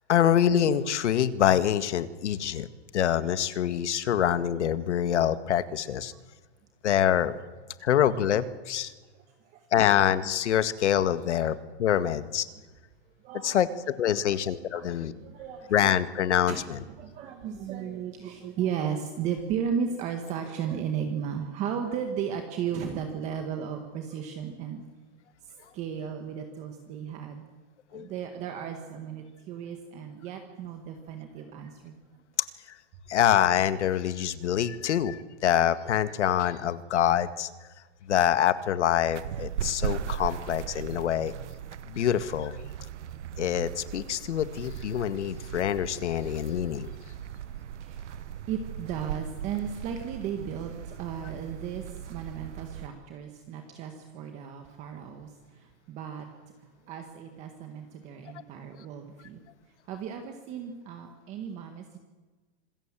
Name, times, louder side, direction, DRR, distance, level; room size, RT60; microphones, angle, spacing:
voice 1, 0.1-2.7 2.9-6.1 6.8-7.4 7.8-8.9 9.7-12.5 13.4-13.7 14.0-15.1 15.7-16.8 27.9-28.1 33.1-37.5 38.1-41.3 41.9-42.5 43.4-46.9, left 10 dB, 85° left, 12 dB, 2.0 m, -25 dB
voice 2, 13.2-13.6 14.1-14.4 14.7-15.7 16.5-16.6 16.9-24.8 25.6-27.4 27.9-31.9 47.8-48.2 48.5-56.3 56.9-59.4 59.9-62.0, right 8 dB, 20° right, 5 dB, 1.7 m, -35 dB
sound 1, 39.1-52.9, right 10 dB, 85° right, 1.3 m, -38 dB
26.5 x 22.0 x 7.6 m, 1.3 s
supercardioid pair, 180°, 34 cm